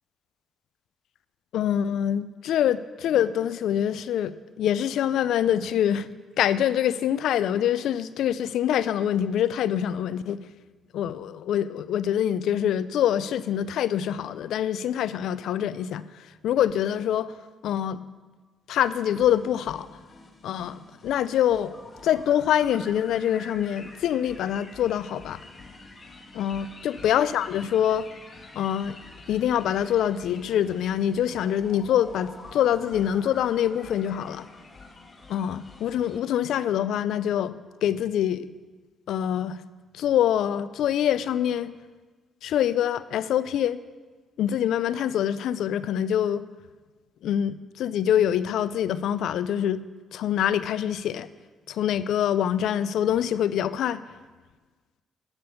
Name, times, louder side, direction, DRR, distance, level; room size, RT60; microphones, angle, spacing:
voice 1, 1.5-6.1 6.4-10.5 10.9-16.0 16.4-17.3 17.6-18.0 18.7-19.9 20.4-21.7 22.0-25.4 26.3-28.1 28.6-28.9 29.3-34.5 35.3-38.5 39.1-39.6 39.9-41.7 42.4-43.8 44.4-46.4 47.2-49.8 50.1-51.3 51.7-54.0, left 10 dB, 80° left, 16 dB, 0.4 m, -25 dB
sound 1, 18.8-36.2, left 3 dB, 35° left, 1.7 m, -47 dB
11.5 x 6.9 x 6.9 m, 1.3 s
cardioid pair, 90°, 0 cm